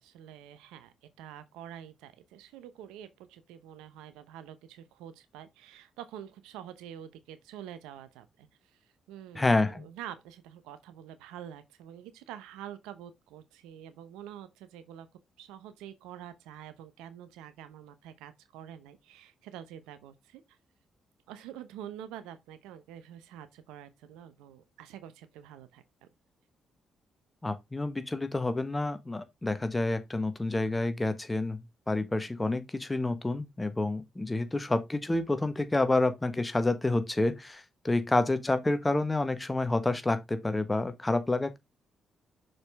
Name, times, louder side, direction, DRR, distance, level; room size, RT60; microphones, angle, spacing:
voice 1, 0.0-8.8 9.1-15.1 15.4-20.4 21.3-26.1, right 10 dB, 80° right, 0.8 m, -47 dB
voice 2, 9.3-9.9 27.4-41.6, left 2 dB, 20° left, 1.4 m, -29 dB
6.4 x 5.2 x 3.5 m
hypercardioid pair, 45°, 0 cm